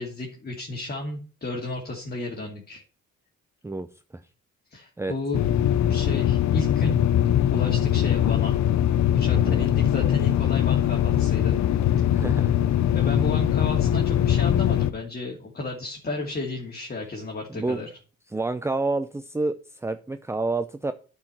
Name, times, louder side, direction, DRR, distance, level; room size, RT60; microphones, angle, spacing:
voice 1, 0.0-2.8 4.7-5.4 5.9-7.0 7.5-8.6 9.1-11.6 12.0-12.1 12.9-17.9, left 2 dB, 30° left, 0 dB, 2.5 m, -33 dB
sound 1, 5.3-14.9, left 11 dB, 65° left, 0.8 m, -21 dB
voice 2, 9.3-9.7 12.1-12.5 17.5-17.8 18.3-20.9, right 3 dB, 10° right, 10 dB, 0.6 m, -28 dB
9.2 x 4.9 x 7.5 m, 0.38 s
cardioid pair, 90°, 30 cm